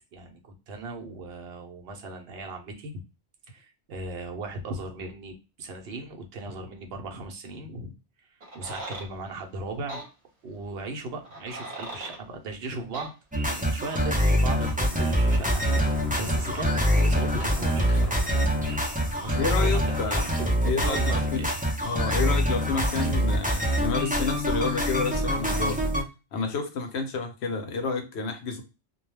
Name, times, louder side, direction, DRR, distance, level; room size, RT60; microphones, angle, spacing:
voice 1, 0.1-3.0 3.5-7.9 8.5-10.0 10.4-13.1 13.4-18.8 19.2-20.3 20.8-21.5, right 3 dB, 70° right, 3 dB, 0.9 m, -38 dB
sound 1, 8.4-9.1 9.9-10.1 11.2-12.2 12.9-13.1, right 1 dB, 40° right, 1.0 m, -38 dB
sound 2, 13.3-26.0, equal, 10° right, 0.5 m, -25 dB
Sliding door, 14.7-22.4, left 1 dB, 50° left, 0.7 m, -39 dB
voice 2, 19.3-20.3 20.6-21.5 21.8-25.8 26.3-28.6, left 4 dB, 80° left, 6 dB, 0.9 m, -30 dB
2.3 x 2.1 x 3.1 m, 0.29 s
omnidirectional pair, 1.1 m